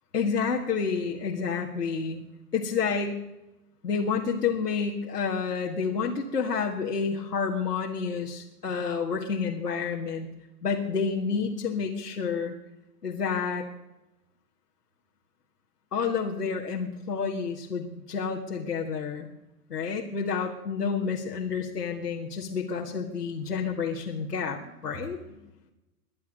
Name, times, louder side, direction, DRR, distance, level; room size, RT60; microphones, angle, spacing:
voice 1, 0.1-2.2 2.5-3.2 3.8-10.3 10.6-12.5 13.0-13.6 15.9-19.3 19.7-25.5, left 5 dB, 85° left, -1 dB, 1.8 m, -29 dB
22.0 x 8.5 x 6.4 m, 0.95 s
figure-of-eight pair, 105°, 46 cm